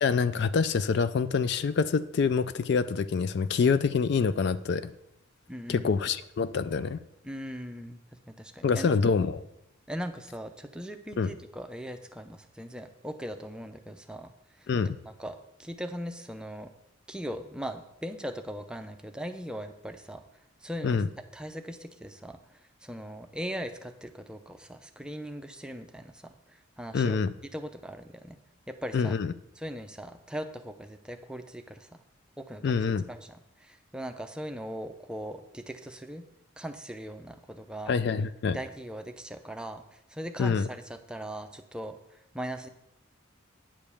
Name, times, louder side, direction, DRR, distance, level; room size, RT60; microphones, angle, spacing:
voice 1, 0.0-4.9 5.7-7.0 8.6-9.4 11.2-11.3 14.7-15.0 20.8-21.1 26.9-27.3 28.9-29.3 32.6-33.0 37.9-38.6 40.4-40.7, left 5 dB, 55° left, 13 dB, 0.3 m, -26 dB
voice 2, 5.5-5.9 7.2-8.0 8.3-9.0 9.9-14.3 14.6-14.7 15.0-16.7 17.1-20.2 20.6-21.0 21.3-22.4 22.8-27.2 27.5-28.4 28.7-29.1 29.6-32.0 32.4-32.7 33.1-36.2 36.6-37.9 38.5-42.7, equal, 5° right, 6 dB, 0.5 m, -39 dB
8.9 x 5.1 x 7.0 m, 0.82 s
head